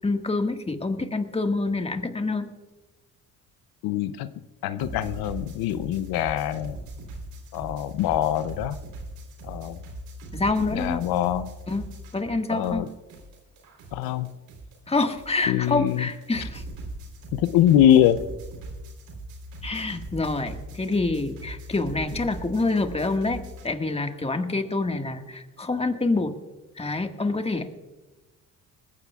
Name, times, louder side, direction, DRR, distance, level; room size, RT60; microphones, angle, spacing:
voice 1, 0.0-2.5 10.3-11.0 11.7-11.9 12.1-12.9 14.9-16.6 19.6-26.3 26.8-27.7, left 3 dB, 15° left, 5 dB, 1.6 m, -27 dB
voice 2, 3.8-4.3 4.6-6.8 7.5-8.8 9.4-9.8 10.7-11.5 12.5-12.8 13.9-14.3 15.5-16.1 17.3-18.2, left 11 dB, 85° left, 13 dB, 0.6 m, -23 dB
sound 1, 4.8-12.4 12.6-23.7, right 1 dB, 80° right, 3.7 m, -40 dB
20.5 x 15.5 x 2.4 m, 1.1 s
supercardioid pair, 70°, 35 cm